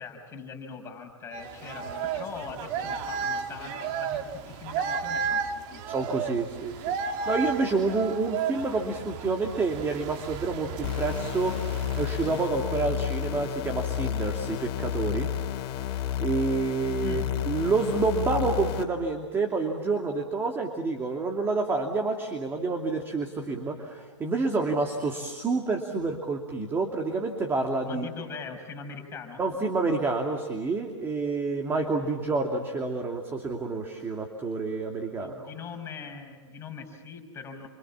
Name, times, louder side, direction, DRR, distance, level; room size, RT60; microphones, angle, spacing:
voice 1, 0.0-5.8 17.0-17.3 27.8-29.4 35.1-37.7, left 5 dB, 15° left, 3 dB, 5.8 m, -41 dB
sound 1, 1.3-12.5, right 6 dB, 35° right, 2.2 m, -33 dB
voice 2, 5.9-7.0 7.3-15.3 16.2-28.1 29.4-35.5, right 3 dB, 15° right, 3 dB, 2.7 m, -28 dB
sound 2, 10.8-18.8, left 10 dB, 35° left, 3.5 m, -31 dB
29.5 x 27.0 x 7.3 m, 1.5 s
hypercardioid pair, 130°, 15 cm